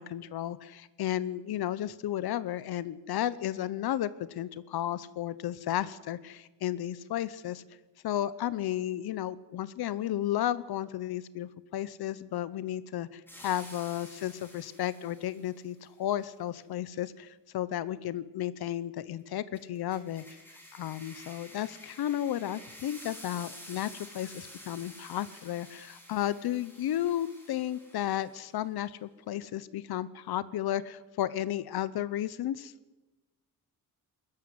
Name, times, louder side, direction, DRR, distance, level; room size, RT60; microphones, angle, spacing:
voice 1, 0.0-7.6 8.0-20.2 20.7-32.7, left 12 dB, 90° left, 16 dB, 0.9 m, -33 dB
sound 1, 13.3-15.6 19.5-28.5, equal, 5° left, 4.9 m, -50 dB
21.0 x 13.5 x 9.5 m, 1.1 s
wide cardioid pair, 170°, 37 cm